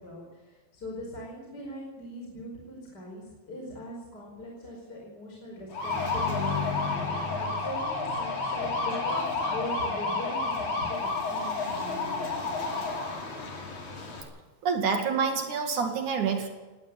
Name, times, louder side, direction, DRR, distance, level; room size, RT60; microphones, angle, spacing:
voice 1, 0.0-6.6 6.8-12.5, left 1 dB, 25° left, -2 dB, 5.0 m, -41 dB
sound 1, 5.7-14.2, left 3 dB, 45° left, 5.2 m, -30 dB
voice 2, 14.6-16.5, right 5 dB, 55° right, 4 dB, 3.4 m, -27 dB
19.0 x 17.5 x 8.7 m, 1.2 s
omnidirectional pair, 4.6 m